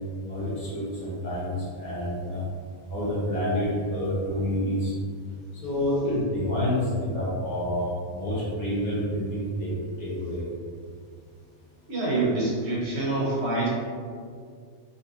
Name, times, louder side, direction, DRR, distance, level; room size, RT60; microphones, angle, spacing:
voice 1, 0.2-2.5 2.8-4.9 5.5-9.7 10.0-10.5, left 1 dB, 75° left, -8 dB, 1.8 m, -28 dB
voice 2, 11.9-13.7, right 2 dB, 50° right, -7 dB, 1.4 m, -26 dB
4.2 x 3.0 x 2.8 m, 2.1 s
omnidirectional pair, 1.5 m